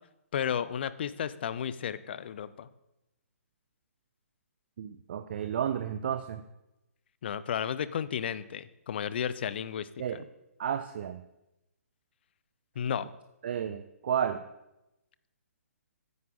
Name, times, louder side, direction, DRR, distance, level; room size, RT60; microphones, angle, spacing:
voice 1, 0.3-2.7 7.2-10.2 12.8-13.1, left 8 dB, 40° left, 15 dB, 0.6 m, -33 dB
voice 2, 4.8-6.4 10.0-10.2 10.6-11.2 13.4-14.4, right 9 dB, 40° right, 9 dB, 0.6 m, -32 dB
15.5 x 9.5 x 3.8 m, 0.89 s
figure-of-eight pair, 130°, 8 cm